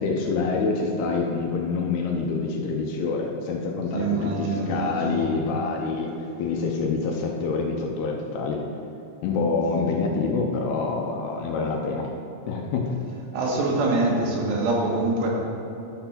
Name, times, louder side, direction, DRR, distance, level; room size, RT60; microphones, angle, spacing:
voice 1, 0.0-8.6 9.2-12.1 12.5-13.0, left 4 dB, 80° left, 1 dB, 2.7 m, -26 dB
voice 2, 3.9-5.3 13.3-15.3, right 2 dB, 85° right, -2 dB, 3.5 m, -24 dB
12.0 x 4.6 x 5.7 m, 2.9 s
omnidirectional pair, 4.8 m